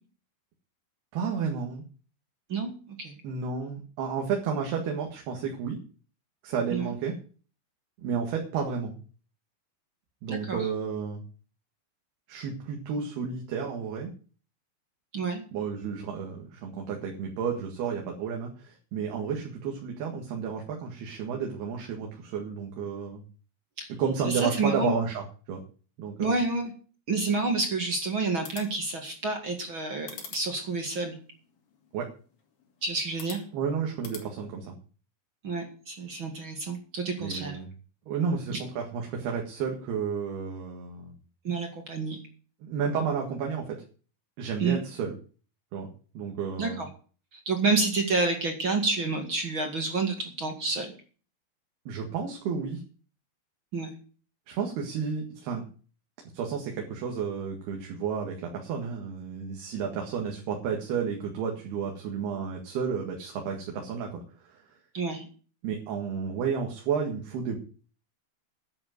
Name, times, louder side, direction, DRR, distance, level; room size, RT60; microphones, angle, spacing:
voice 1, 1.1-1.8 3.2-5.8 6.4-7.1 8.0-9.0 10.2-11.2 12.3-14.1 15.5-23.2 23.9-25.6 26.0-26.4 31.9-32.1 33.5-34.8 37.2-37.7 38.1-41.1 42.6-43.8 44.4-45.1 45.7-45.9 46.2-46.9 51.9-52.8 54.5-55.6 56.3-64.6 65.6-67.6, right 6 dB, 75° right, 1 dB, 3.9 m, -32 dB
voice 2, 2.5-3.1 6.7-6.9 10.3-10.7 15.1-15.4 23.8-23.9 24.2-24.9 26.2-26.7 27.1-31.2 32.8-33.4 35.4-37.6 38.5-38.6 41.4-42.2 44.6-44.8 46.6-46.9 47.3-50.9 53.7-53.9 64.9-65.3, right 3 dB, 40° right, 4 dB, 2.1 m, -29 dB
sound 1, 28.3-34.3, left 6 dB, 65° left, 4.3 m, -48 dB
11.0 x 7.6 x 9.4 m, 0.40 s
omnidirectional pair, 4.6 m